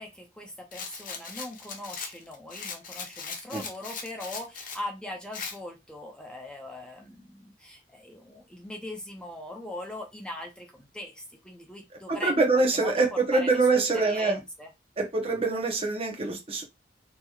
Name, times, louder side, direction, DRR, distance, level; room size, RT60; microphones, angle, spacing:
voice 1, 0.0-14.7, left 1 dB, 5° left, 0.6 m, -41 dB
Rattle, 0.7-4.8 5.3-5.6, left 5 dB, 50° left, 0.7 m, -39 dB
voice 2, 12.1-14.4 15.0-16.6, right 3 dB, 35° right, 0.8 m, -24 dB
2.9 x 2.8 x 2.3 m
head